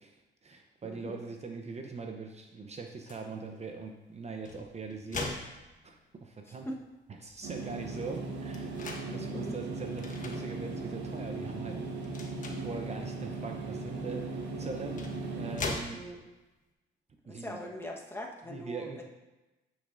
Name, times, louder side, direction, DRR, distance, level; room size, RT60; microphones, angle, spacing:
voice 1, 0.0-6.7 7.2-12.2 12.6-16.0 17.3-17.6 18.5-19.0, right 4 dB, 35° right, 3 dB, 0.7 m, -42 dB
voice 2, 0.8-1.2 6.5-6.8 9.1-9.6 15.9-16.2 17.3-19.0, left 1 dB, 10° left, -1 dB, 1.2 m, -41 dB
sound 1, 3.1-3.3 4.2-6.2 6.8-6.9 7.2-9.1 10.0-10.4 11.0-11.2 12.0-12.7 14.1-14.2 14.8-16.4, left 3 dB, 40° left, 1.2 m, -41 dB
sound 2, 7.4-15.6, right 3 dB, 65° right, 1.4 m, -38 dB
9.8 x 6.3 x 2.6 m, 1.1 s
cardioid pair, 90°, 20 cm